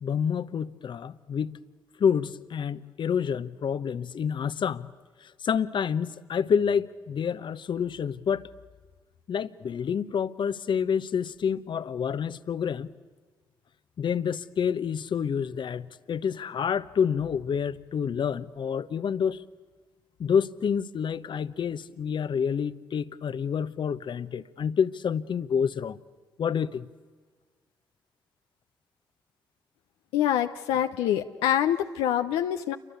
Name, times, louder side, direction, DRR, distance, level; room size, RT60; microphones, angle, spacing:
voice 1, 0.0-1.6 2.0-4.9 5.4-8.5 9.3-12.9 14.0-19.4 20.2-26.0 26.4-26.9, left 7 dB, 55° left, 1.0 m, -28 dB
voice 2, 30.1-32.8, left 10 dB, 80° left, 0.7 m, -25 dB
28.5 x 24.0 x 8.4 m
hypercardioid pair, 40°, 9 cm